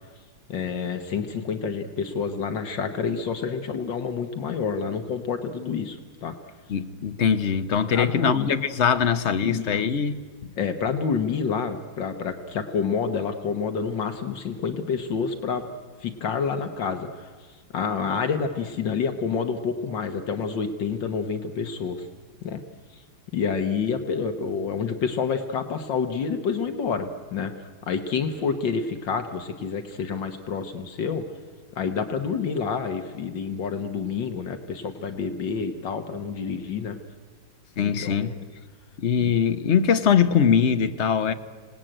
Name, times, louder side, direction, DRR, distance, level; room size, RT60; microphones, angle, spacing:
voice 1, 0.5-6.4 7.9-8.6 9.4-10.0 10.6-15.7 16.0-17.3 17.7-22.1 22.4-22.6 23.3-27.5 27.9-31.3 31.8-37.0 37.8-38.4 39.2-39.3, left 6 dB, 70° left, 8 dB, 1.9 m, -28 dB
voice 2, 6.7-10.5 37.8-38.4 39.0-41.3, left 7 dB, 45° left, 10 dB, 1.0 m, -22 dB
26.0 x 19.0 x 9.0 m, 1.5 s
omnidirectional pair, 2.1 m